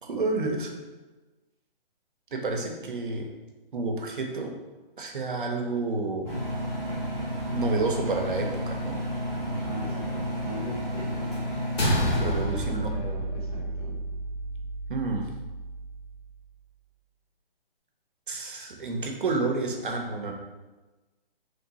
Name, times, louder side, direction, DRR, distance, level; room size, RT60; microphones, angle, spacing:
voice 1, 0.0-0.7 2.3-3.3 3.7-4.5 5.0-6.3 7.5-9.0 12.1-12.9 14.9-15.3 18.3-20.3, right 3 dB, 60° right, 2 dB, 0.7 m, -30 dB
Engine, 6.2-12.2, equal, 15° left, 1.1 m, -31 dB
voice 2, 9.5-11.5 12.1-14.0, right 1 dB, 40° left, -2 dB, 0.7 m, -40 dB
sound 1, 11.8-16.3, equal, 85° left, 1.2 m, -30 dB
3.2 x 2.8 x 4.0 m, 1.2 s
hypercardioid pair, 175°, 30 cm